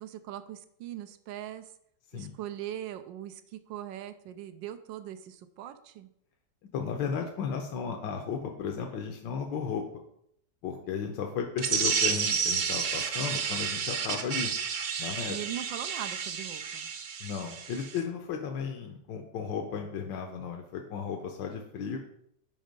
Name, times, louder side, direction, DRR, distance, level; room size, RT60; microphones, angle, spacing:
voice 1, 0.0-1.7 2.1-6.1 15.3-16.9, right 11 dB, 90° right, 9 dB, 1.3 m, -40 dB
voice 2, 6.7-9.8 10.6-14.5 15.0-15.4 17.2-22.0, left 6 dB, 85° left, 2 dB, 1.5 m, -34 dB
sound 1, 11.6-18.0, right 6 dB, 55° right, 1.0 m, -31 dB
7.8 x 5.2 x 5.2 m, 0.72 s
omnidirectional pair, 2.0 m